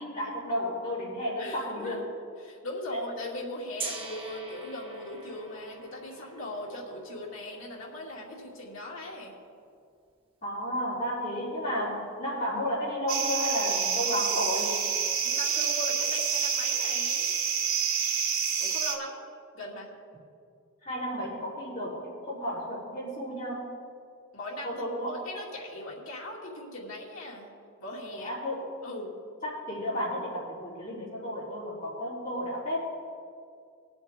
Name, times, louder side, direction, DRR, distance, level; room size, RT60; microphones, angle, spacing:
voice 1, 0.0-2.0 2.9-3.0 10.4-14.9 20.8-23.7 24.6-25.2 28.1-28.6 29.4-32.8, equal, 35° left, -7 dB, 3.5 m, -32 dB
voice 2, 1.4-2.0 2.4-9.3 15.2-17.3 18.6-19.1 19.5-19.9 24.3-24.8 25.1-27.5 27.8-28.3 28.8-29.1, left 1 dB, 70° left, -3 dB, 2.5 m, -39 dB
Gong, 3.8-9.7, right 3 dB, 25° right, 1.3 m, -44 dB
sound 1, 13.1-19.0, right 7 dB, 85° right, 1.4 m, -28 dB
21.0 x 7.7 x 3.7 m, 2.3 s
head